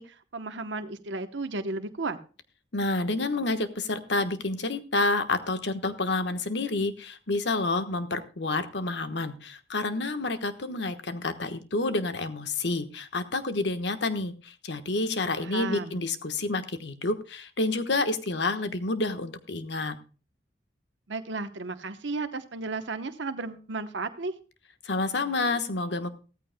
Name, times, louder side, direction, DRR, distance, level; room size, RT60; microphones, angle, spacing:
voice 1, 0.0-2.2 15.3-16.0 21.1-24.3, right 3 dB, 75° right, 8 dB, 0.9 m, -34 dB
voice 2, 2.7-20.0 24.8-26.1, left 2 dB, 70° left, 9 dB, 1.2 m, -29 dB
16.0 x 14.0 x 2.2 m, 0.36 s
head